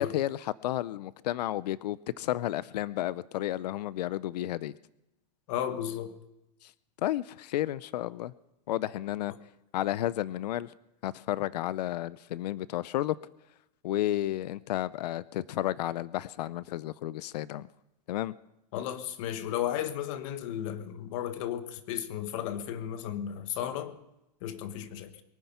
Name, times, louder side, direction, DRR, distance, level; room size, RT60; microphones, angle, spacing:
voice 1, 0.0-4.7 6.6-6.7 7.0-8.3 8.7-9.3 9.7-10.7 11.0-13.2 13.8-17.7 18.1-18.3, left 14 dB, 75° left, 0.5 m, -32 dB
voice 2, 5.5-6.2 18.7-24.0 24.4-25.1, left 10 dB, 50° left, 1.4 m, -34 dB
23.0 x 9.4 x 5.6 m
supercardioid pair, 150°, 21 cm